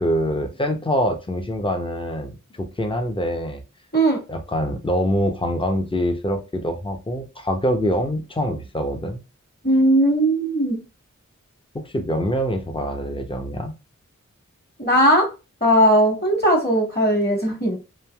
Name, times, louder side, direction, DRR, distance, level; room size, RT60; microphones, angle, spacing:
voice 1, 0.0-3.6 4.3-9.2 11.7-13.7, equal, 15° left, 0.6 m, -24 dB
voice 2, 9.6-10.8 14.8-15.3 15.6-17.8, right 1 dB, 35° left, 1.4 m, -18 dB
3.2 x 2.6 x 2.2 m
wide cardioid pair, 40°, 30 cm